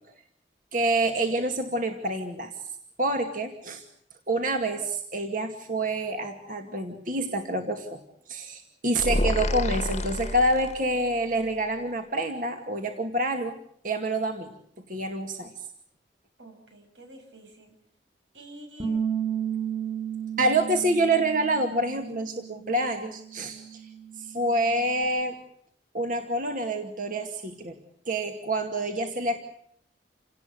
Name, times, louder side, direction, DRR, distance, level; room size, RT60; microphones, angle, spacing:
voice 1, 0.7-2.5 3.0-3.8 4.3-8.0 8.3-13.5 13.8-14.5 14.9-15.5 20.4-23.8 24.2-25.4 25.9-27.8 28.1-29.4, right 1 dB, 50° right, 4 dB, 2.3 m, -27 dB
sound 1, 9.0-11.1, left 1 dB, 40° left, 1.4 m, -28 dB
voice 2, 16.4-17.7 18.3-19.0, right 1 dB, 85° right, 6 dB, 7.3 m, -48 dB
Bass guitar, 18.8-25.0, right 8 dB, 25° right, 5.3 m, -34 dB
28.5 x 19.0 x 8.2 m, 0.68 s
head